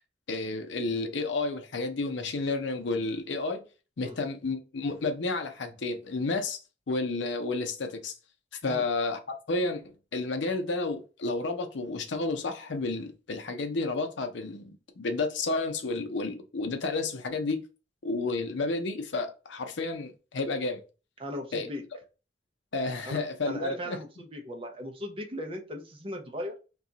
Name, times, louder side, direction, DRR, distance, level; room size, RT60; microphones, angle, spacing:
voice 1, 0.3-3.6 4.0-6.6 6.9-8.1 8.6-17.6 18.0-20.8 21.5-21.7 22.7-24.0, left 3 dB, 70° left, 0.6 m, -31 dB
voice 2, 21.2-21.8 23.0-26.5, equal, 30° right, 0.6 m, -38 dB
2.8 x 2.3 x 3.8 m
head